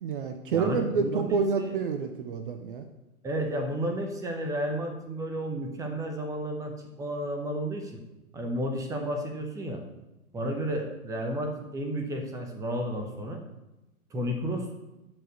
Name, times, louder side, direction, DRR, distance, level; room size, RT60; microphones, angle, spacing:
voice 1, 0.0-2.8, right 5 dB, 35° right, 7 dB, 0.8 m, -28 dB
voice 2, 0.5-1.8 3.2-8.0 8.3-9.8 10.3-13.4 14.1-14.7, right 1 dB, 5° right, 4 dB, 1.0 m, -32 dB
12.0 x 5.3 x 6.5 m, 0.97 s
figure-of-eight pair, 115°, 44 cm